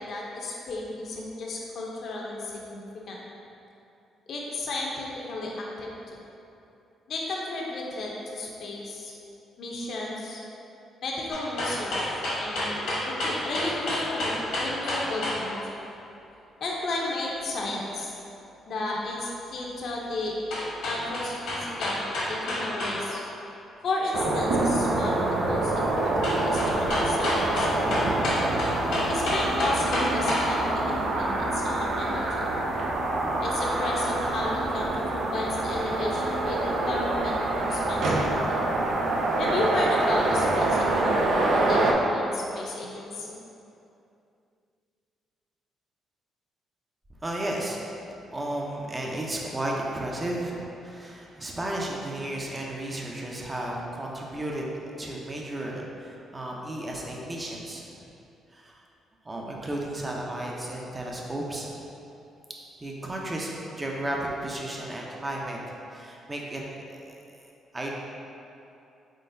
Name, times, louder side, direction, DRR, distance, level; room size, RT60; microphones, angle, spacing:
voice 1, 0.0-3.2 4.3-5.9 7.1-9.1 9.6-10.4 11.0-14.3 14.6-15.8 16.6-18.1 18.7-20.3 20.8-23.2 23.8-28.1 29.1-32.5 33.4-38.6 39.4-43.4, left 2 dB, 60° left, -3 dB, 0.7 m, -33 dB
sound 1, 11.3-15.4 20.5-23.0 23.2-23.3 26.2-30.5 30.9-31.0, left 1 dB, 85° left, 1.3 m, -29 dB
sound 2, 24.1-41.9, right 2 dB, 75° right, 0.4 m, -26 dB
voice 2, 47.2-47.8 48.3-57.8 58.5-58.8 59.2-61.7 62.8-67.2 67.7-67.9, right 1 dB, 20° right, -2 dB, 0.6 m, -33 dB
4.1 x 3.7 x 2.6 m, 2.8 s
cardioid pair, 90°, 0 cm